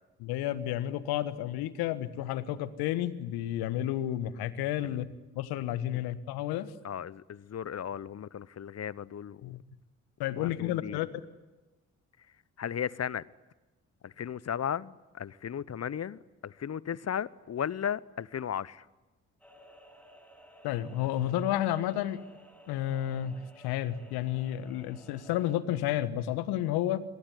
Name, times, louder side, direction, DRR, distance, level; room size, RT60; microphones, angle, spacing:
voice 1, 0.2-6.7 9.4-9.6 10.2-11.2 20.6-22.2 22.7-27.0, left 12 dB, 75° left, 1.5 m, -31 dB
voice 2, 6.8-9.6 10.4-11.0 12.6-13.2 14.0-18.8, left 8 dB, 40° left, 1.0 m, -36 dB
sound 1, 19.4-25.6, equal, 5° left, 6.8 m, -56 dB
27.5 x 22.0 x 9.9 m
hypercardioid pair, 40°, 38 cm